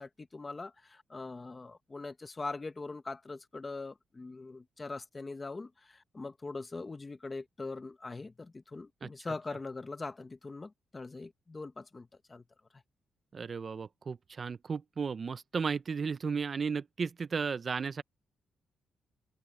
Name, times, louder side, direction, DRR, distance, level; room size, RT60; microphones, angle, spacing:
voice 1, 0.0-12.4, left 3 dB, 20° left, 1.2 m, -42 dB
voice 2, 13.3-18.0, right 5 dB, 35° right, 0.4 m, -34 dB
cardioid pair, 145°, 0 cm